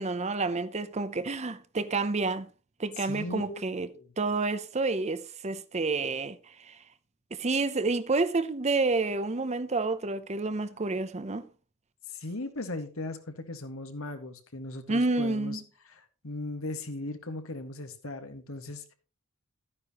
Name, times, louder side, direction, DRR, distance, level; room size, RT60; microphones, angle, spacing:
voice 1, 0.0-2.5 2.8-3.9 4.2-6.8 7.3-11.4 14.9-15.6, right 3 dB, 30° right, 0.7 m, -29 dB
voice 2, 3.0-4.1 12.1-18.9, left 2 dB, 65° left, 1.7 m, -38 dB
12.5 x 9.6 x 3.0 m
head